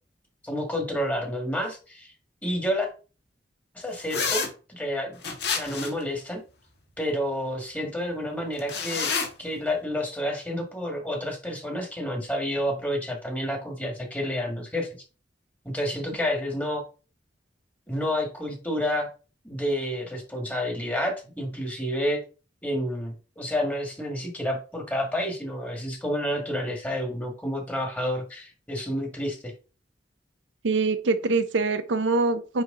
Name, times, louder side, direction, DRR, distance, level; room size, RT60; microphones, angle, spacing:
voice 1, 0.4-2.1 2.4-2.9 3.7-4.4 4.7-5.2 5.5-6.4 7.0-9.1 9.4-14.9 15.6-16.8 17.9-19.1 19.4-22.2 22.6-29.5, equal, 10° left, 1.7 m, -29 dB
sound 1, 4.1-4.5 5.2-6.0 8.6-9.3, left 5 dB, 65° left, 1.7 m, -28 dB
voice 2, 30.6-32.6, right 3 dB, 80° right, 0.6 m, -24 dB
9.3 x 3.1 x 3.7 m
head